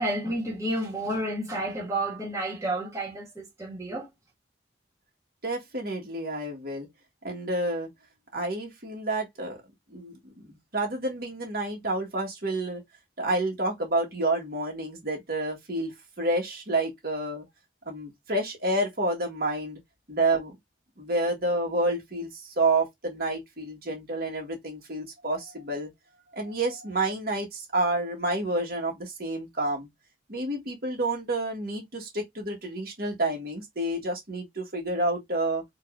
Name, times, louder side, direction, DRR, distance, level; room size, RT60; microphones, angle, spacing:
voice 1, 0.0-4.1, right 1 dB, 15° right, 1.7 m, -30 dB
voice 2, 5.4-6.9 7.2-7.9 8.3-9.6 9.9-12.8 13.2-17.4 17.8-19.8 20.1-20.5 21.0-25.9 26.3-29.9 30.3-35.6, right 2 dB, 55° right, 1.6 m, -29 dB
4.9 x 2.9 x 2.5 m
head